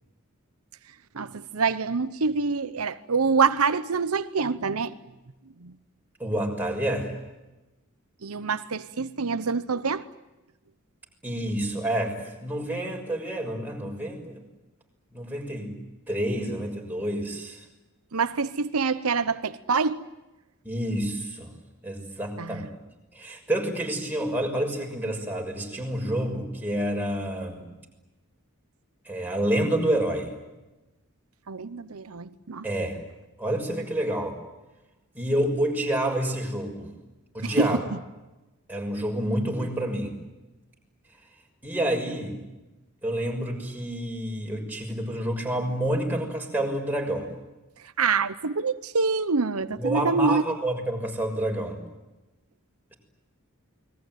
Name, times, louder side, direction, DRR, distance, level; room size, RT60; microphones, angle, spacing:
voice 1, 1.1-4.9 5.6-5.7 8.2-10.0 18.1-20.0 22.4-22.7 31.5-32.6 37.4-37.7 48.0-50.4, right 4 dB, 85° right, 0.9 m, -26 dB
voice 2, 6.2-7.1 11.2-14.4 15.1-15.7 16.1-17.6 20.6-21.5 21.8-22.6 23.1-27.7 29.0-30.3 32.6-33.0 33.4-34.4 35.1-36.9 37.3-37.8 38.7-40.2 41.6-42.4 43.0-47.3 49.8-51.8, right 1 dB, 10° right, 6.4 m, -28 dB
29.0 x 21.5 x 9.3 m
head